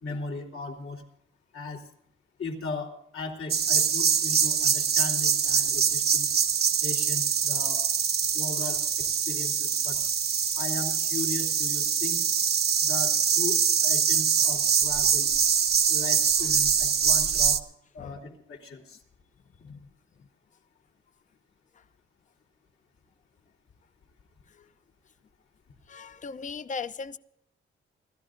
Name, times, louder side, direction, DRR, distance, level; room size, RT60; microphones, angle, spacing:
voice 1, 0.0-1.0 1.5-1.8 2.4-6.3 6.8-7.8 8.3-10.0 10.6-12.2 12.8-15.3 15.9-17.6 17.9-19.0, left 3 dB, 80° left, -1 dB, 3.6 m, -37 dB
sound 1, 3.5-17.6, right 7 dB, 50° right, 0.8 m, -24 dB
voice 2, 25.9-27.2, left 5 dB, 35° left, 14 dB, 0.6 m, -38 dB
30.0 x 13.5 x 2.6 m, 0.73 s
wide cardioid pair, 145°, 21 cm